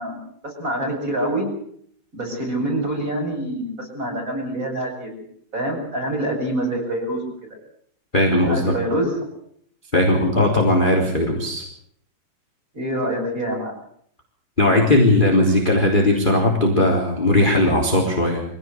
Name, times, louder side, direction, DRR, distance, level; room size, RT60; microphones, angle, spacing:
voice 1, 0.0-1.5 2.1-5.1 5.5-7.2 8.5-9.1 12.7-13.8, right 1 dB, 20° right, 0 dB, 8.0 m, -26 dB
voice 2, 8.1-8.7 9.9-11.6 14.6-18.4, left 1 dB, 15° left, 0 dB, 3.5 m, -18 dB
24.5 x 17.5 x 8.1 m, 0.65 s
omnidirectional pair, 4.3 m